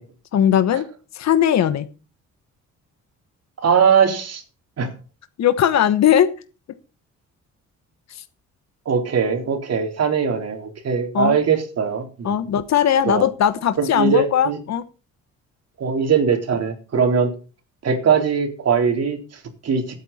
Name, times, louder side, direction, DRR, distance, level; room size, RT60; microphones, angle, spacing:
voice 1, 0.3-0.9 1.1-1.9 5.4-6.3 8.1-8.2 11.1-11.4 12.2-14.8, left 9 dB, 65° left, 11 dB, 1.2 m, -18 dB
voice 2, 3.6-4.4 4.8-4.9 8.9-12.4 13.1-13.3 13.8-14.6 15.8-17.3 17.8-19.2 19.6-19.8, right 6 dB, 55° right, 3 dB, 4.0 m, -20 dB
16.0 x 9.2 x 4.3 m, 0.35 s
cardioid pair, 90°, 30 cm